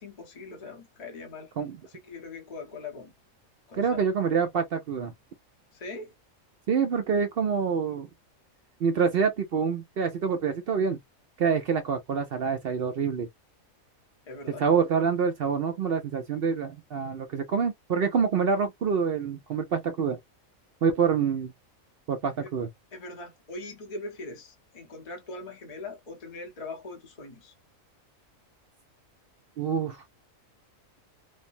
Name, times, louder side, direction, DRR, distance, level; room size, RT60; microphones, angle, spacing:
voice 1, 0.0-1.5 1.8-3.1 3.7-4.0 5.7-6.1 14.3-14.6 22.9-27.5, left 3 dB, 35° left, 0.7 m, -41 dB
voice 2, 3.8-5.1 6.7-8.1 8.8-11.0 11.4-13.3 14.6-20.2 20.8-21.5 22.1-22.7 29.6-30.0, right 6 dB, 60° right, 0.6 m, -26 dB
3.1 x 2.0 x 2.5 m
omnidirectional pair, 1.4 m